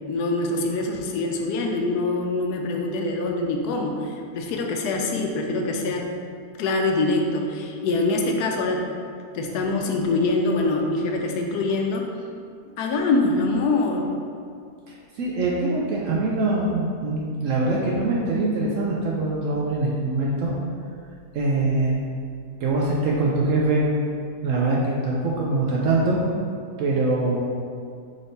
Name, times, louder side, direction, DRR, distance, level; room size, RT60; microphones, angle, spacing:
voice 1, 0.1-6.1 6.6-8.9 9.3-12.1 12.8-14.1, left 2 dB, 80° left, 2 dB, 1.1 m, -24 dB
voice 2, 14.9-20.5 21.3-22.0 22.6-23.8 24.4-26.2 26.8-27.4, right 2 dB, 70° right, -3 dB, 0.8 m, -23 dB
3.8 x 3.5 x 4.0 m, 2.3 s
omnidirectional pair, 1.7 m